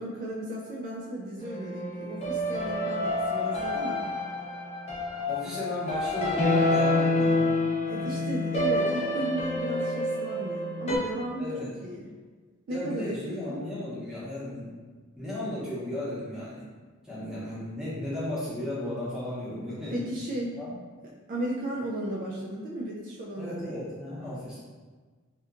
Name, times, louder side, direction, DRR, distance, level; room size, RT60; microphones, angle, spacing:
voice 1, 0.0-4.1 7.9-12.1 12.7-13.6 19.9-20.6 21.3-23.8, right 1 dB, 45° right, -4 dB, 0.3 m, -35 dB
sound 1, 1.4-11.0, left 2 dB, 35° left, 0.6 m, -28 dB
voice 2, 5.3-7.5 8.0-8.2 11.4-11.7 12.7-14.7 15.2-16.6 17.0-20.1 20.6-20.7 23.4-24.6, left 1 dB, 5° right, -10 dB, 0.8 m, -35 dB
2.8 x 2.2 x 2.4 m, 1.4 s
head